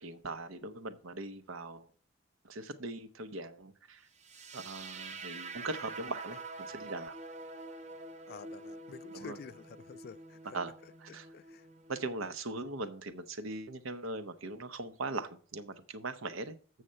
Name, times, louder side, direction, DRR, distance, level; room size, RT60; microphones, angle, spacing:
voice 1, 0.0-1.9 2.4-4.1 4.5-7.1 9.1-9.4 10.5-10.7 11.1-11.3 11.9-16.8, right 2 dB, 75° right, 0.8 m, -40 dB
sound 1, 4.2-12.2, right 3 dB, 35° right, 0.6 m, -46 dB
voice 2, 8.3-10.6 10.8-11.7, left 5 dB, 45° left, 0.3 m, -50 dB
7.5 x 6.5 x 5.5 m
head